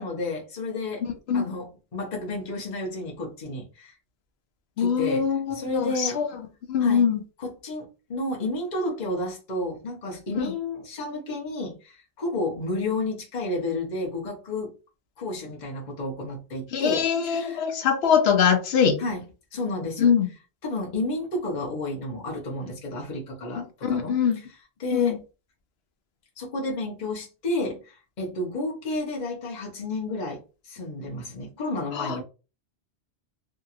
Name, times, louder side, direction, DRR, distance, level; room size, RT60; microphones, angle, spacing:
voice 1, 0.0-1.0 1.3-3.9 4.8-5.3 5.5-6.2 6.8-7.1 7.4-14.7 15.2-17.6 19.0-19.2 19.5-20.1 20.6-24.2 24.8-25.2 26.4-32.2, left 2 dB, 45° left, 0.9 m, -31 dB
voice 2, 1.0-1.4 4.8-6.3 6.7-7.2 10.4-10.5 16.7-19.0 20.0-20.3 23.6-24.4 24.9-25.2 31.9-32.2, left 7 dB, 70° left, 0.9 m, -23 dB
2.8 x 2.8 x 2.4 m
omnidirectional pair, 1.1 m